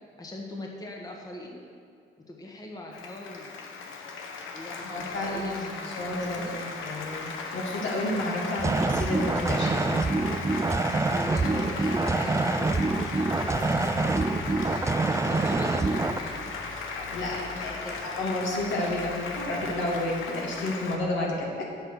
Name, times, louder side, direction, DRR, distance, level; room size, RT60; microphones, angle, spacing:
voice 1, 0.2-1.6 2.3-3.6 4.5-6.6 11.1-16.4 17.2-18.0, left 1 dB, 20° left, 0 dB, 1.4 m, -40 dB
Applause, 2.9-21.0, left 4 dB, 85° left, 1.2 m, -37 dB
voice 2, 4.7-5.6 6.0-9.9 17.0-21.6, left 1 dB, 70° left, -3 dB, 2.6 m, -31 dB
sound 1, 8.6-16.2, right 3 dB, 15° right, 0.4 m, -26 dB
sound 2, 13.4-19.5, left 2 dB, 40° left, 1.6 m, -47 dB
8.3 x 7.8 x 6.4 m, 2.4 s
cardioid pair, 90°, 20 cm